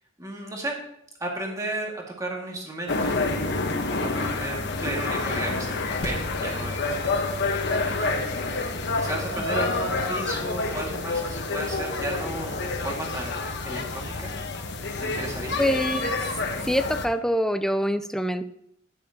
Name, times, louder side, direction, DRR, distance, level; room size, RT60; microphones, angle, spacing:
voice 1, 0.2-0.8 1.2-3.3 4.2-5.8 6.0-6.8 7.8-8.5 9.0-13.3 13.6-14.3 15.0-15.6, right 1 dB, 15° right, -1 dB, 2.0 m, -33 dB
sound 1, 2.9-17.1, left 3 dB, 60° left, 1.2 m, -28 dB
voice 2, 15.6-16.2 16.7-18.4, equal, 5° left, 10 dB, 0.4 m, -25 dB
12.0 x 10.0 x 2.9 m, 0.75 s
head